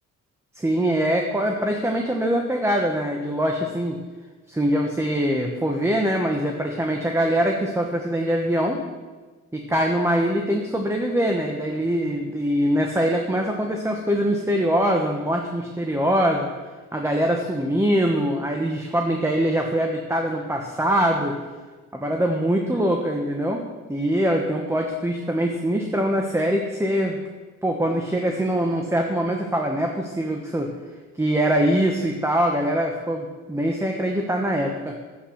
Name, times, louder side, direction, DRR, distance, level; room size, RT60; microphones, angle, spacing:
voice 1, 0.6-4.0 4.5-8.8 9.5-16.5 16.9-21.4 21.9-23.6 23.9-27.2 27.6-30.7 31.2-35.0, equal, 10° right, 2 dB, 1.2 m, -23 dB
10.0 x 8.3 x 5.7 m, 1.3 s
cardioid pair, 90°, 30 cm